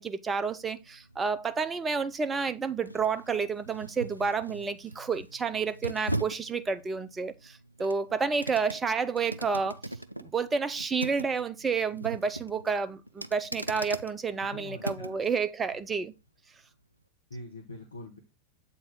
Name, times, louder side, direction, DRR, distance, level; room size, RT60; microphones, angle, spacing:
voice 1, 0.0-9.8 10.2-16.1, right 5 dB, 15° right, 0.6 m, -30 dB
sound 1, 0.6-15.3 15.7-15.9, right 1 dB, 90° right, 0.3 m, -40 dB
voice 2, 14.4-15.2 17.3-18.2, left 1 dB, 75° left, 1.2 m, -44 dB
7.8 x 4.2 x 3.6 m
figure-of-eight pair, 90°, 0 cm